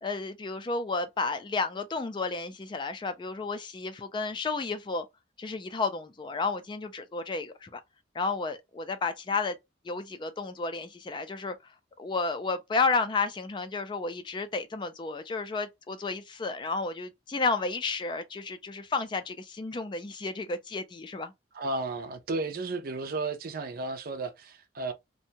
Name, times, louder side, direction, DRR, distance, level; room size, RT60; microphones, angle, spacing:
voice 1, 0.0-5.1 5.4-7.8 8.1-9.6 9.8-11.6 12.0-21.3, left 4 dB, 25° left, 0.3 m, -32 dB
voice 2, 21.5-24.9, right 3 dB, 55° right, 0.5 m, -33 dB
2.6 x 2.2 x 2.7 m
head